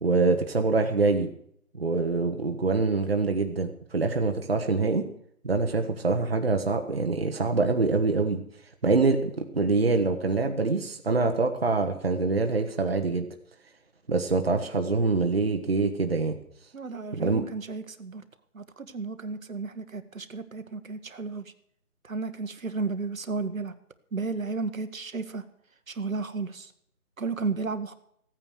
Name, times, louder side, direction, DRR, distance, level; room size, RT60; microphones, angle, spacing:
voice 1, 0.0-1.3 1.8-5.1 5.4-8.4 8.8-13.3 14.1-16.4 17.1-17.4, right 3 dB, 45° right, 5 dB, 1.1 m, -25 dB
voice 2, 16.7-18.2 18.5-21.4 22.0-23.7 24.1-25.4 25.9-26.7 27.2-27.9, right 4 dB, 65° right, 10 dB, 1.3 m, -33 dB
15.5 x 9.2 x 6.5 m, 0.70 s
figure-of-eight pair, 175°, 44 cm